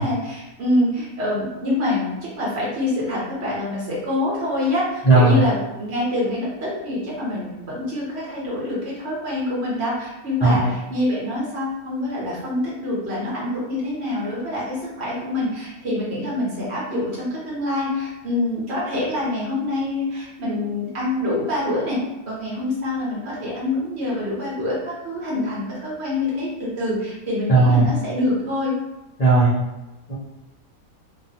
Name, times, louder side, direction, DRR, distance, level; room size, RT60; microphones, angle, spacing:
voice 1, 0.0-22.0 22.3-28.7, left 1 dB, 50° right, -6 dB, 1.1 m, -26 dB
voice 2, 5.0-5.4 10.4-10.7 27.5-27.9 29.2-29.5 30.1-30.2, right 3 dB, 60° left, -8 dB, 0.4 m, -15 dB
2.6 x 2.3 x 2.7 m, 1.0 s
omnidirectional pair, 1.5 m